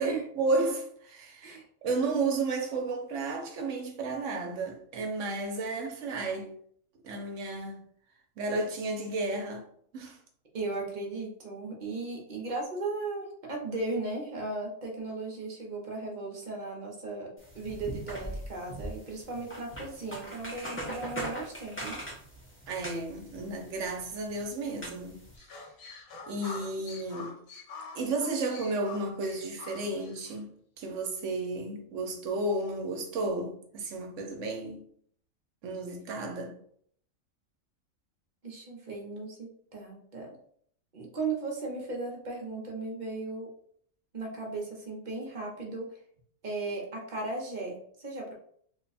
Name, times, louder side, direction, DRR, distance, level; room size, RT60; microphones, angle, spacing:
voice 1, 0.0-1.6 1.8-6.5 7.0-7.8 8.4-9.6 9.9-10.2 22.7-25.2 26.3-27.4 27.9-30.5 30.8-34.8 35.6-36.6, right 2 dB, 70° right, 1.0 m, -32 dB
voice 2, 10.5-22.0 38.4-40.3 40.9-43.5 44.1-46.0 46.4-48.3, right 3 dB, 40° right, 0.8 m, -36 dB
sound 1, 17.4-25.4, right 1 dB, 10° left, 0.6 m, -41 dB
sound 2, 25.3-30.4, left 4 dB, 90° left, 1.2 m, -45 dB
3.1 x 2.2 x 4.0 m
omnidirectional pair, 1.4 m